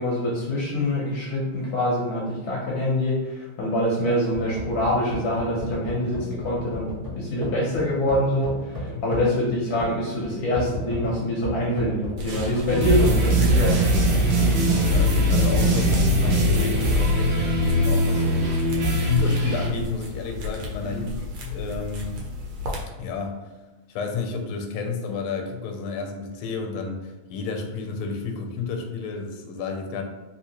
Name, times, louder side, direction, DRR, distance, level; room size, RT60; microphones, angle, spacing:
voice 1, 0.0-13.8 20.8-21.0, left 1 dB, 70° left, -4 dB, 0.9 m, -25 dB
sound 1, 4.3-17.1, left 1 dB, 35° right, 0.4 m, -34 dB
sound 2, 12.2-22.8, left 2 dB, 85° right, 1.6 m, -35 dB
sound 3, 12.7-19.7, equal, 65° right, 1.3 m, -21 dB
voice 2, 14.8-22.2 23.0-23.4 23.9-30.0, left 5 dB, 85° left, 4 dB, 1.5 m, -31 dB
3.6 x 2.7 x 2.8 m, 1.1 s
omnidirectional pair, 2.3 m